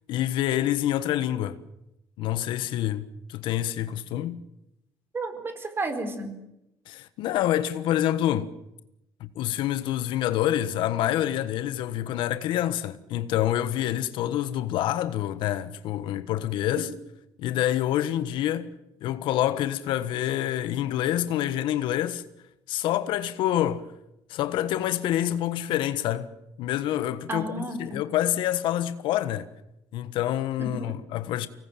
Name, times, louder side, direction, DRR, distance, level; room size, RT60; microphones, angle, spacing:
voice 1, 0.1-1.6 2.2-4.4 6.9-8.5 9.2-16.9 17.4-18.7 19.0-22.2 22.7-23.9 24.3-26.3 26.6-29.5 29.9-31.5, left 12 dB, 75° left, 1.4 m, -27 dB
voice 2, 5.1-6.3 27.3-28.0 30.6-30.9, right 2 dB, 25° right, 4.5 m, -32 dB
25.0 x 19.0 x 9.1 m
cardioid pair, 120°, 8 cm